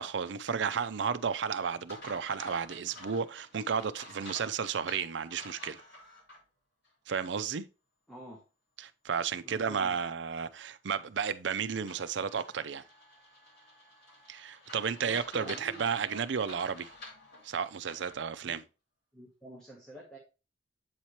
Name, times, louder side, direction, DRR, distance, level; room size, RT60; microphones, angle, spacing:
voice 1, 0.0-5.8 7.1-7.7 8.8-12.8 14.3-16.9 17.4-18.6, right 6 dB, 70° right, 0.5 m, -33 dB
sound 1, 1.9-6.4 6.8-6.9 11.9-18.2, left 2 dB, 60° left, 2.5 m, -50 dB
voice 2, 8.1-8.4 9.4-10.0 15.0-15.9 18.4-18.6 19.1-20.2, right 1 dB, 5° left, 1.1 m, -47 dB
8.0 x 4.3 x 3.0 m
head